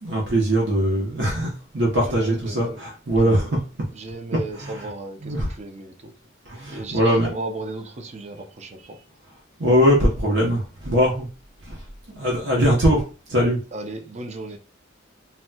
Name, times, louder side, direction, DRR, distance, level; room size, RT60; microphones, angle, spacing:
voice 1, 0.0-3.6 4.5-4.9 5.2-5.5 6.5-7.3 9.6-11.3 11.6-13.6, equal, 65° right, 0.8 m, -21 dB
voice 2, 2.0-2.8 3.1-3.5 3.9-6.1 6.7-9.0 13.7-14.6, right 2 dB, 35° right, 0.5 m, -35 dB
4.0 x 2.1 x 2.2 m
head